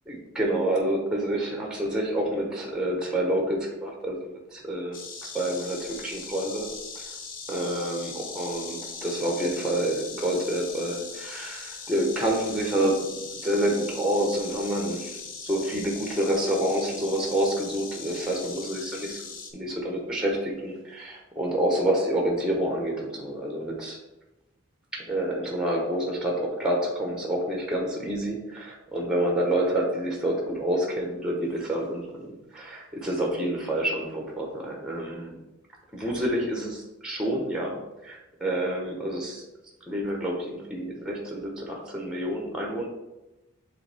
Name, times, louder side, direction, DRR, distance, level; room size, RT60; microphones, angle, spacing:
voice 1, 0.1-4.2 4.5-6.7 7.5-24.0 24.9-32.3 32.5-35.3 35.9-39.4 39.9-42.9, right 1 dB, 5° right, 0 dB, 1.0 m, -28 dB
Insect, 4.9-19.5, left 5 dB, 45° left, 0.8 m, -40 dB
8.0 x 3.8 x 3.4 m, 0.99 s
head